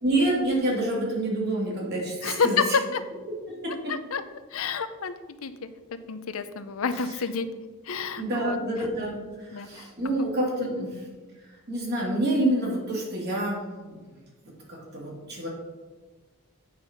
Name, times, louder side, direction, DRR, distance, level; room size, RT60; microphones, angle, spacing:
voice 1, 0.0-2.6 3.5-3.9 8.2-11.0 11.7-14.0 14.7-15.5, right 1 dB, 50° right, -4 dB, 2.2 m, -27 dB
voice 2, 2.2-2.6 2.9-3.0 3.9-4.2 4.5-5.1 5.4-5.5 6.1-7.5 7.8-8.6 9.5-9.9 10.6-10.9, left 6 dB, 75° left, 11 dB, 0.6 m, -29 dB
8.7 x 4.0 x 5.7 m, 1.3 s
head